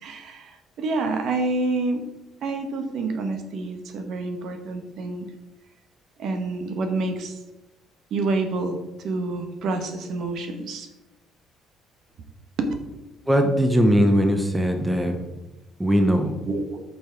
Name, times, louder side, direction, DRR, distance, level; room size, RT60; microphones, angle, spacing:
voice 1, 0.0-2.0 2.4-5.3 6.2-7.4 8.1-10.9 12.6-12.7 16.4-16.8, right 3 dB, 55° right, 6 dB, 1.2 m, -28 dB
voice 2, 13.3-15.2 15.8-16.4, equal, 5° right, 5 dB, 0.8 m, -20 dB
8.6 x 5.5 x 4.6 m, 0.99 s
cardioid pair, 155°, 0 cm